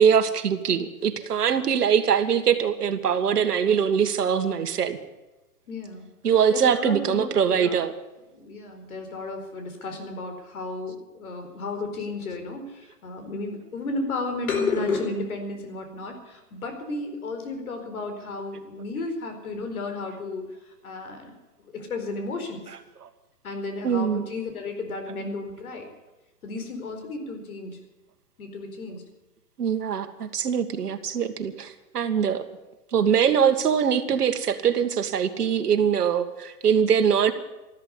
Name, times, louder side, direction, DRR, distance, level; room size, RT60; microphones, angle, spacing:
voice 1, 0.0-5.0 6.2-7.9 23.0-23.1 23.8-24.2 29.6-32.4 32.9-37.3, right 7 dB, 75° right, 8 dB, 2.0 m, -22 dB
voice 2, 5.7-6.1 6.5-7.8 8.3-20.5 20.8-21.3 21.7-22.6 23.4-25.9 26.4-27.8 28.4-29.0, left 3 dB, 65° left, 6 dB, 4.5 m, -33 dB
13.5 x 12.5 x 8.2 m, 1.1 s
hypercardioid pair, 160°, 47 cm